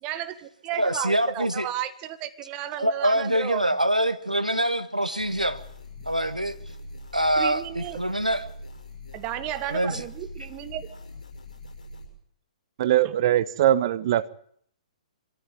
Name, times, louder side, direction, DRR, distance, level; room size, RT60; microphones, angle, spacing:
voice 1, 0.0-3.7 7.4-8.0 9.1-10.9 13.0-13.1, right 13 dB, 25° right, 1.5 m, -33 dB
voice 2, 0.7-1.7 2.8-5.6 6.0-6.5 7.1-8.5 9.7-10.0, right 1 dB, 90° right, 1.4 m, -25 dB
sound 1, 5.2-12.1, left 2 dB, 70° left, 6.3 m, -43 dB
voice 3, 12.8-14.3, right 12 dB, 45° right, 0.8 m, -21 dB
24.5 x 14.0 x 9.1 m
figure-of-eight pair, 120°, 4 cm